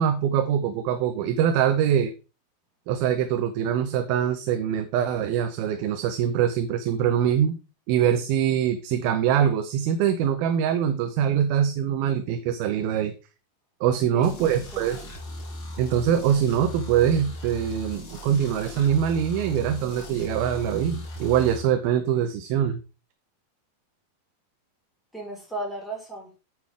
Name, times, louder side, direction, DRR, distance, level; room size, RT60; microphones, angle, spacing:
voice 1, 0.0-2.1 2.9-7.6 7.9-13.1 13.8-15.0 15.8-22.8, right 9 dB, 85° right, 9 dB, 2.6 m, -23 dB
voice 2, 14.1-15.0 25.1-26.3, right 1 dB, ahead, -3 dB, 4.3 m, -36 dB
sound 1, 14.2-21.6, left 1 dB, 35° left, 2.5 m, -38 dB
9.5 x 8.1 x 3.6 m, 0.31 s
omnidirectional pair, 4.2 m